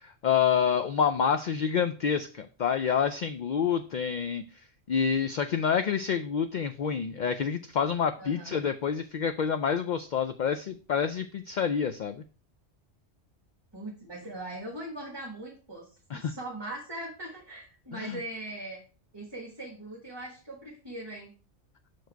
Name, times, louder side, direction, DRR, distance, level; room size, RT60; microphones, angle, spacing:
voice 1, 0.0-4.4 4.9-12.2 16.1-16.3 17.9-18.2, left 7 dB, 65° left, 9 dB, 0.4 m, -28 dB
voice 2, 8.2-8.6 13.7-15.9 16.1-18.8 19.1-21.3, right 1 dB, 20° right, -2 dB, 1.4 m, -40 dB
6.3 x 4.8 x 4.5 m, 0.37 s
omnidirectional pair, 1.2 m